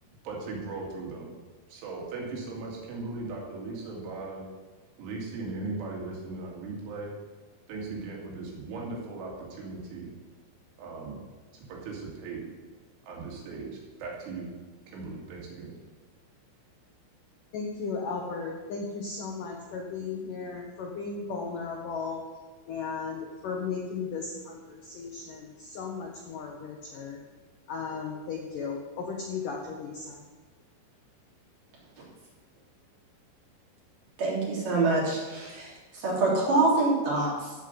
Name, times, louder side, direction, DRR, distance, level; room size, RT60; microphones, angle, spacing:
voice 1, 0.2-1.3 1.7-4.4 5.0-7.1 7.7-10.1 10.8-11.2 11.7-12.4 13.0-14.5 14.9-15.7, right 3 dB, 80° right, -2 dB, 4.8 m, -38 dB
voice 2, 17.5-22.2 22.7-27.2 27.7-30.2, left 5 dB, 75° left, 1 dB, 1.9 m, -36 dB
voice 3, 34.2-37.5, right 3 dB, 45° right, -5 dB, 4.7 m, -26 dB
15.5 x 5.2 x 7.6 m, 1.3 s
omnidirectional pair, 5.6 m